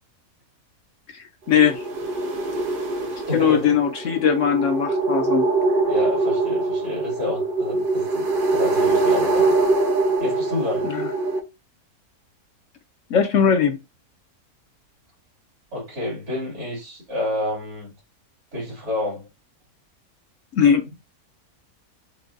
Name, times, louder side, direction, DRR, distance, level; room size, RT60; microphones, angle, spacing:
voice 1, 1.1-1.8 3.3-5.5 10.8-11.1 13.1-13.8 20.5-20.8, left 7 dB, 60° left, 0.9 m, -20 dB
sound 1, 1.5-11.4, right 3 dB, 45° right, 0.8 m, -23 dB
voice 2, 3.3-3.7 5.9-9.5 10.2-10.9 15.7-17.9 18.5-19.2, left 2 dB, 75° right, 3.4 m, -29 dB
6.0 x 2.3 x 2.6 m
omnidirectional pair, 1.6 m